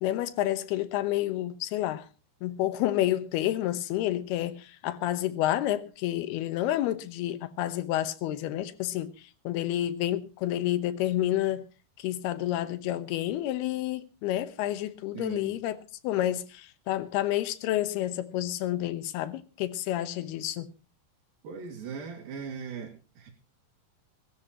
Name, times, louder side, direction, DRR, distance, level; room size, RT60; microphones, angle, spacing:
voice 1, 0.0-2.1 2.4-11.6 12.0-15.8 16.0-20.7, left 13 dB, 85° left, 3.1 m, -29 dB
voice 2, 15.1-15.5 21.4-23.3, right 6 dB, 65° right, 4.1 m, -39 dB
21.0 x 16.5 x 3.0 m
omnidirectional pair, 4.5 m